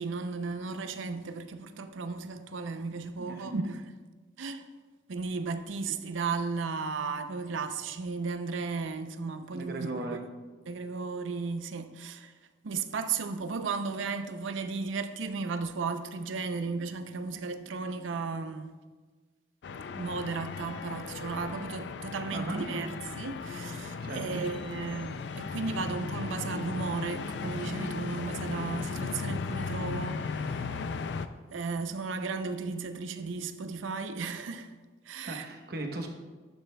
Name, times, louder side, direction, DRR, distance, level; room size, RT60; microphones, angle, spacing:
voice 1, 0.0-3.9 4.4-4.7 5.1-10.2 10.7-12.3 12.6-18.7 19.9-30.8 31.5-34.7 35.0-35.5, right 4 dB, 90° right, 0.5 m, -35 dB
voice 2, 3.2-3.5 9.5-10.2 22.3-22.6 24.0-24.3 35.2-36.1, right 2 dB, 55° right, 0.9 m, -37 dB
sound 1, 19.6-31.3, left 5 dB, 65° left, 0.4 m, -36 dB
11.5 x 7.3 x 2.2 m
head